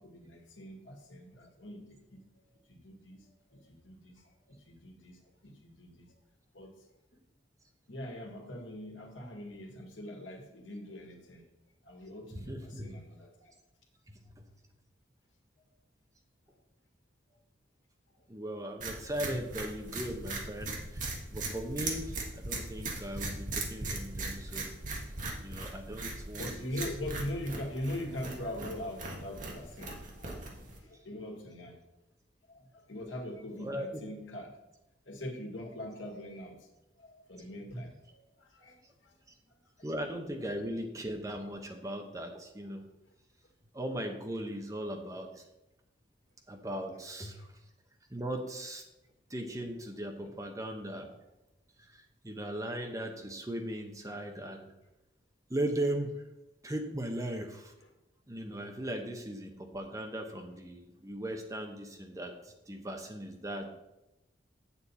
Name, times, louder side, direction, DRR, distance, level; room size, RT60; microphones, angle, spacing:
voice 1, 0.0-2.2 2.7-3.2 3.5-6.1 6.5-6.7 7.9-11.4 11.8-13.5 19.3-19.4 23.3-23.4 26.4-31.8 32.5-34.6 35.0-36.6 37.0-38.8 39.0-39.1 47.4-47.5 50.2-50.3, left 1 dB, 85° left, 2 dB, 1.8 m, -42 dB
voice 2, 12.3-12.9 14.1-14.4 18.3-24.7 25.0-25.1 25.4-26.6 33.6-34.0 39.8-42.8 43.7-45.4 46.5-47.4 48.1-48.8 49.3-51.1 51.8-54.7 55.5-56.1 56.6-57.7 58.3-63.7, right 1 dB, 15° right, 3 dB, 0.9 m, -38 dB
sound 1, 18.8-30.8, right 2 dB, 40° right, 1.5 m, -39 dB
8.5 x 7.0 x 4.2 m, 0.93 s
head